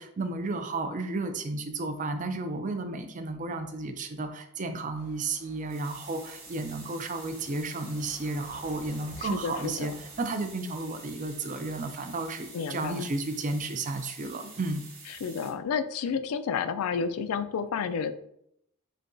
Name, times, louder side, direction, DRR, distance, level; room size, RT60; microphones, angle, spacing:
voice 1, 0.0-14.8, right 3 dB, 35° right, 7 dB, 0.4 m, -33 dB
sound 1, 4.9-10.2, equal, 5° right, 0.8 m, -53 dB
sound 2, 5.7-15.5, right 3 dB, 75° right, 1.5 m, -48 dB
voice 2, 9.2-10.0 12.5-13.0 15.2-18.1, left 6 dB, 75° left, 12 dB, 0.3 m, -31 dB
6.4 x 2.3 x 2.6 m, 0.76 s
head